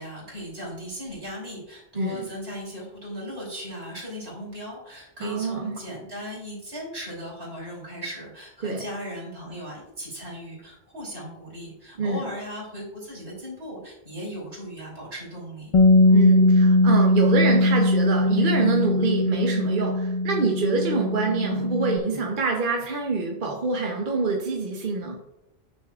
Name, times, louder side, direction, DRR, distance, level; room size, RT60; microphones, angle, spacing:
voice 1, 0.0-15.8, equal, 75° right, -4 dB, 3.3 m, -37 dB
voice 2, 2.0-2.3 5.2-5.8 8.6-8.8 12.0-12.3 16.1-25.2, right 3 dB, 55° right, 1 dB, 0.9 m, -25 dB
Bass guitar, 15.7-22.0, left 2 dB, 55° left, 0.4 m, -20 dB
9.4 x 6.4 x 2.4 m, 0.86 s
omnidirectional pair, 1.1 m